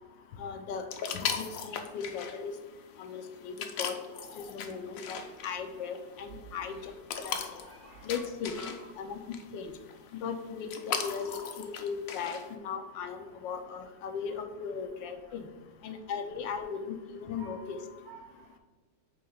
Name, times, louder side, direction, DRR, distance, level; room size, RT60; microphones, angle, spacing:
voice 1, 0.4-0.8 1.2-2.5 3.0-3.9 4.4-6.9 7.2-7.4 8.0-9.2 9.5-9.7 10.2-15.5 15.8-17.8, left 6 dB, 85° left, 6 dB, 1.4 m, -37 dB
sound 1, 0.9-12.5, left 7 dB, 65° left, 0.9 m, -39 dB
voice 2, 7.5-9.1 12.1-12.2 14.3-14.4 15.2-15.3 16.3-16.4 17.4-18.6, right 3 dB, 60° right, 4 dB, 1.2 m, -53 dB
7.6 x 2.8 x 5.4 m, 1.3 s
omnidirectional pair, 2.0 m